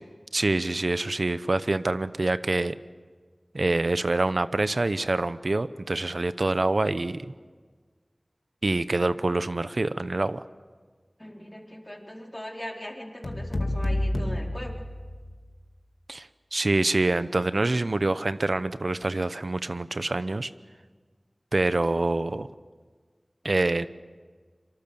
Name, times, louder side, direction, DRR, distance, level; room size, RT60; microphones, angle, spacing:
voice 1, 0.3-2.8 3.5-7.3 8.6-10.4 16.1-20.5 21.5-22.5 23.4-23.9, right 2 dB, 70° right, 13 dB, 0.8 m, -26 dB
voice 2, 11.2-14.7, equal, 20° left, 0 dB, 4.1 m, -40 dB
sound 1, 13.2-15.5, left 1 dB, 70° left, 2.0 m, -29 dB
26.0 x 24.0 x 7.0 m, 1.5 s
wide cardioid pair, 40°, 0 cm